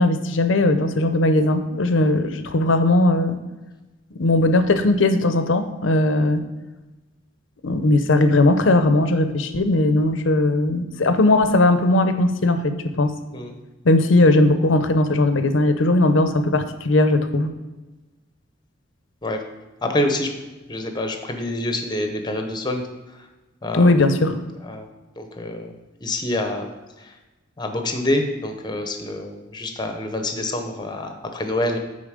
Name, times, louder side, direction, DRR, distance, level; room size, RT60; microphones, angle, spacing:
voice 1, 0.0-3.4 4.1-6.4 7.6-13.1 13.8-17.5 23.7-24.3, left 2 dB, 70° left, 9 dB, 0.6 m, -18 dB
voice 2, 19.8-20.3 20.7-22.8 23.6-23.9 24.6-24.9 25.2-25.7 26.0-26.7 27.0-27.1 27.6-31.8, left 1 dB, 20° left, 5 dB, 0.8 m, -26 dB
8.8 x 4.0 x 5.0 m, 1.1 s
head